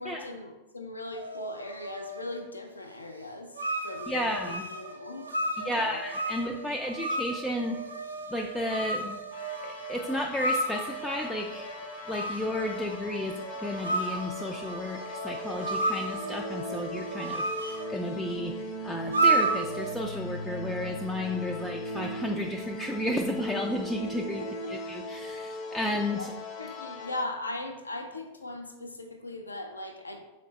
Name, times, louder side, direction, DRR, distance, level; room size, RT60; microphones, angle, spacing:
voice 1, 0.0-3.6 3.8-6.0 24.6-24.7 26.2-26.3 26.6-30.2, left 2 dB, 80° left, 4 dB, 0.5 m, -39 dB
sound 1, 1.1-2.5 3.6-18.0 19.1-19.9, right 2 dB, 80° right, 0.4 m, -33 dB
voice 2, 4.1-4.7 5.6-7.8 8.3-9.2 9.6-11.7 12.1-18.6 18.8-26.3, left 1 dB, 5° left, 1 dB, 0.3 m, -33 dB
sound 2, 9.3-27.2, left 1 dB, 35° left, 0.6 m, -39 dB
3.9 x 3.2 x 4.0 m, 1.0 s
figure-of-eight pair, 90°, 0 cm